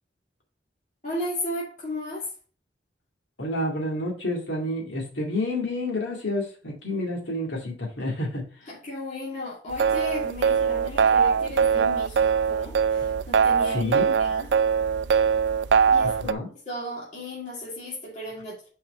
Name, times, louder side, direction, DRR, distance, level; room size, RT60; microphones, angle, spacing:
voice 1, 1.0-2.3 8.7-13.9 14.2-14.5 15.9-16.3 16.7-18.6, left 1 dB, 40° left, -6 dB, 2.3 m, -35 dB
voice 2, 3.4-8.5 13.7-14.1 16.0-16.5, left 1 dB, 80° left, -2 dB, 2.1 m, -29 dB
sound 1, 9.7-16.3, right 6 dB, 70° right, 0.4 m, -22 dB
6.5 x 4.8 x 4.2 m, 0.39 s
head